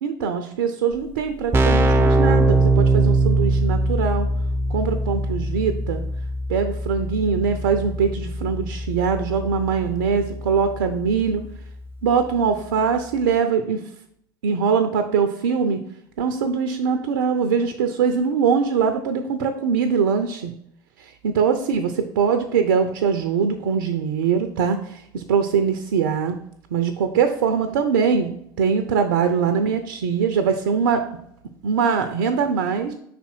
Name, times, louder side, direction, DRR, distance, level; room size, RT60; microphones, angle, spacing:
voice 1, 0.0-4.3 4.7-6.0 6.5-11.4 12.0-13.8 14.4-15.8 16.2-20.5 21.0-26.4 26.7-28.3 28.6-31.0 31.6-32.9, right 6 dB, 70° right, 7 dB, 0.6 m, -22 dB
Keyboard (musical), 0.9-1.0 1.2-11.9, right 2 dB, 20° right, 0.6 m, -22 dB
5.5 x 4.2 x 4.5 m, 0.71 s
hypercardioid pair, 75°, 11 cm